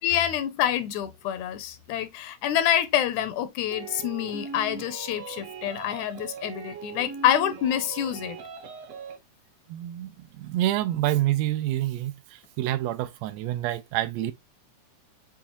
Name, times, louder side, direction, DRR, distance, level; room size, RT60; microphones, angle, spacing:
voice 1, 0.0-8.4, left 11 dB, 80° left, 1.9 m, -27 dB
sound 1, 3.7-9.2, right 5 dB, 60° right, 1.9 m, -40 dB
voice 2, 9.7-14.3, right 14 dB, 85° right, 1.5 m, -27 dB
7.1 x 2.4 x 2.9 m
omnidirectional pair, 3.5 m